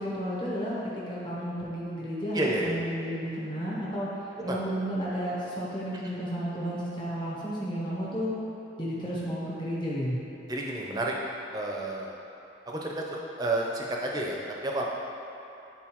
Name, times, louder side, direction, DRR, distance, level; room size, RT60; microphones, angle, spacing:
voice 1, 0.0-4.1 4.4-8.3 8.8-10.2, equal, 25° left, -7 dB, 1.0 m, -32 dB
voice 2, 2.3-2.8 4.5-4.6 10.5-11.1 11.5-12.2 12.7-14.8, right 1 dB, 20° right, -2 dB, 0.6 m, -30 dB
9.6 x 3.9 x 3.0 m, 2.9 s
head